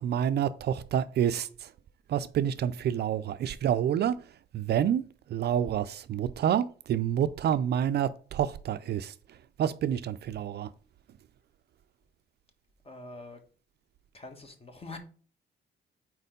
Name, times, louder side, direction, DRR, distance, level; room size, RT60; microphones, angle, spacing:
voice 1, 0.0-1.7 2.1-4.2 4.5-5.0 5.3-9.1 9.6-10.7, right 9 dB, 55° right, 0.4 m, -28 dB
voice 2, 12.8-13.4 14.1-15.0, left 2 dB, 30° left, 1.3 m, -44 dB
4.5 x 4.2 x 5.2 m
cardioid pair, 90°, 20 cm